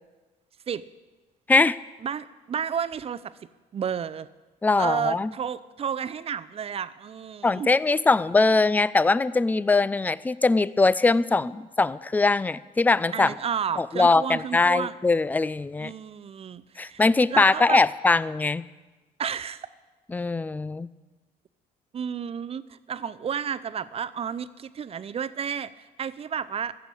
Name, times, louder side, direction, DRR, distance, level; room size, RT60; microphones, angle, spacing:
voice 1, 2.0-3.3 3.7-4.3 4.8-7.7 13.1-14.9 15.8-17.0 17.3-17.8 19.2-19.7 21.9-26.8, right 7 dB, 35° right, 15 dB, 0.6 m, -31 dB
voice 2, 4.6-5.3 7.4-13.3 13.8-15.9 16.8-18.6 20.1-20.9, left 3 dB, 10° left, 19 dB, 0.3 m, -22 dB
15.0 x 7.1 x 8.3 m, 1.2 s
cardioid pair, 110°, 17 cm